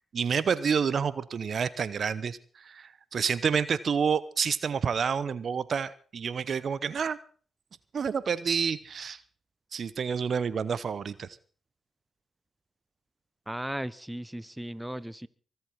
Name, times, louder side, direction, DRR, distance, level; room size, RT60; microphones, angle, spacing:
voice 1, 0.1-7.2 7.9-9.2 9.7-11.4, right 6 dB, 60° right, 17 dB, 0.9 m, -29 dB
voice 2, 13.5-15.3, right 1 dB, 5° right, 18 dB, 1.0 m, -36 dB
24.0 x 8.1 x 5.8 m, 0.43 s
hypercardioid pair, 45°, 0 cm